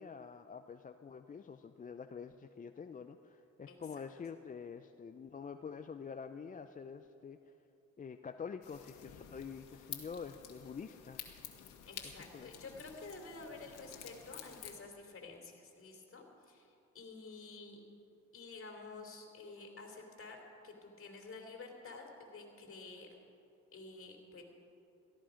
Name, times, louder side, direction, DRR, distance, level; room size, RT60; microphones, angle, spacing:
voice 1, 0.0-7.4 8.0-11.2 12.3-12.5, left 6 dB, 25° left, 8 dB, 0.5 m, -47 dB
sound 1, 8.6-14.8, left 9 dB, 85° left, 1.7 m, -51 dB
voice 2, 11.9-17.8 18.3-23.2 23.7-24.4, left 3 dB, 45° left, 2 dB, 3.1 m, -50 dB
17.5 x 14.0 x 5.1 m, 2.8 s
cardioid pair, 90°, 30 cm